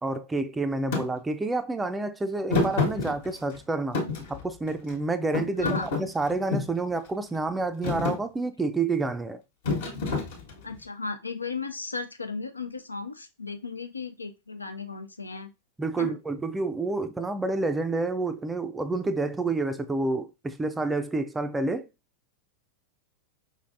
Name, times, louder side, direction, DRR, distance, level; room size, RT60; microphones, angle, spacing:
voice 1, 0.0-4.0 4.3-9.4 15.8-21.9, right 3 dB, 10° right, 0.4 m, -29 dB
Thump thud, 0.9-1.1 2.5-3.6 3.9-4.9 5.3-6.8 7.3-7.6 7.8-8.2 9.6-10.7, left 3 dB, 60° left, 1.2 m, -28 dB
voice 2, 5.6-5.9 10.6-15.5 16.0-16.2, left 4 dB, 80° left, 0.5 m, -35 dB
5.3 x 3.2 x 2.5 m
figure-of-eight pair, 90°, 0 cm